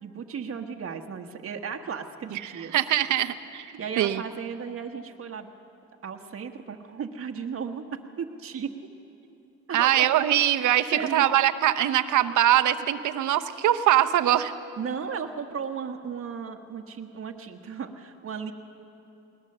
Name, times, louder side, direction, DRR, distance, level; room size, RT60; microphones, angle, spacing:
voice 1, 0.0-2.7 3.8-5.5 6.0-7.8 8.2-8.7 9.7-10.1 10.9-11.3 14.8-18.5, right 6 dB, 45° right, 3 dB, 1.3 m, -35 dB
voice 2, 2.7-3.7 4.0-4.2 9.7-14.5, right 12 dB, 75° right, 9 dB, 0.9 m, -22 dB
21.0 x 19.0 x 6.8 m, 3.0 s
cardioid pair, 90°, 30 cm